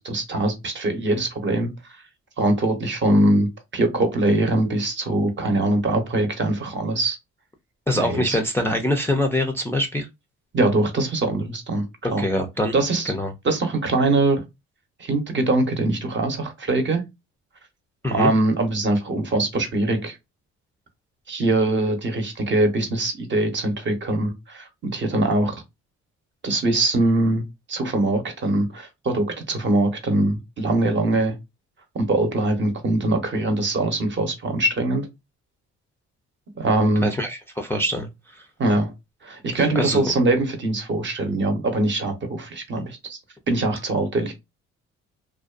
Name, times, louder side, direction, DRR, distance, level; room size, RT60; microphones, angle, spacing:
voice 1, 0.0-1.7 2.4-7.2 8.0-8.4 10.5-11.9 12.1-12.3 12.7-13.1 13.4-14.4 15.0-17.1 18.1-20.2 21.3-25.6 26.4-31.4 31.9-35.1 36.6-37.1 38.6-38.9 39.2-43.2 43.5-44.3, right 2 dB, 40° right, 0.8 m, -22 dB
voice 2, 7.9-10.1 12.0-12.7 13.1-13.3 18.0-18.3 37.0-38.4 39.5-40.1, left 1 dB, 10° left, 0.4 m, -24 dB
2.5 x 2.2 x 2.3 m
cardioid pair, 90°, 30 cm